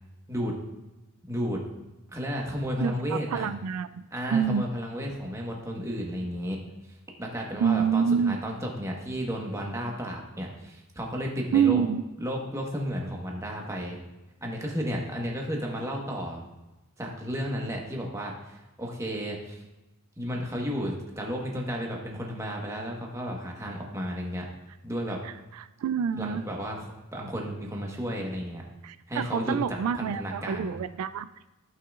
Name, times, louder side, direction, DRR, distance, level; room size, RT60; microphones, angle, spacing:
voice 1, 1.3-1.6 2.1-3.5 4.1-6.6 7.2-11.8 12.2-14.0 14.4-16.4 17.0-19.6 20.2-24.5 24.8-25.2 26.2-26.8 27.1-28.6 29.1-30.7, equal, 15° right, -1 dB, 1.3 m, -33 dB
voice 2, 2.8-4.1 4.3-4.7 7.6-8.4 11.5-12.0 25.2-26.4 28.8-31.3, right 7 dB, 80° right, 13 dB, 0.3 m, -27 dB
15.5 x 5.7 x 2.4 m, 1.0 s
head